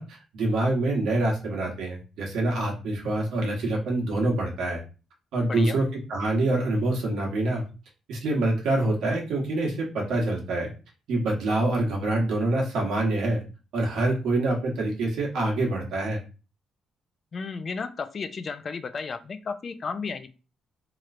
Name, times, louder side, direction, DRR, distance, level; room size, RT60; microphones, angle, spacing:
voice 1, 0.0-4.8 5.3-7.6 8.1-10.7 11.1-13.4 13.7-16.2, right 2 dB, 80° right, -1 dB, 1.1 m, -26 dB
voice 2, 5.5-5.8 17.3-20.3, left 5 dB, 45° left, 10 dB, 0.3 m, -33 dB
3.1 x 2.9 x 2.4 m, 0.33 s
cardioid pair, 90°, 0 cm